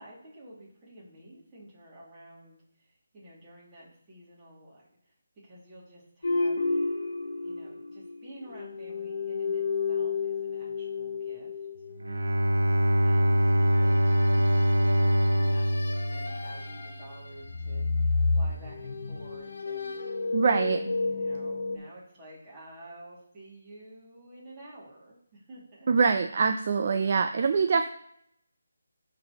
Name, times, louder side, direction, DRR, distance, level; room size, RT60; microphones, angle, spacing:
voice 1, 0.0-5.0 5.4-6.7 7.4-11.5 13.0-20.0 21.0-25.9 27.5-27.7, right 1 dB, 15° right, -7 dB, 2.2 m, -50 dB
sound 1, 6.2-8.2 8.4-12.3 13.9-17.2 17.4-21.8, left 3 dB, 75° left, 1.1 m, -31 dB
Bowed string instrument, 12.0-16.9, equal, 75° right, 0.7 m, -24 dB
voice 2, 20.3-20.9 25.9-27.9, right 5 dB, 35° right, 7 dB, 0.4 m, -24 dB
11.0 x 3.9 x 2.9 m, 0.72 s
figure-of-eight pair, 170°, 0 cm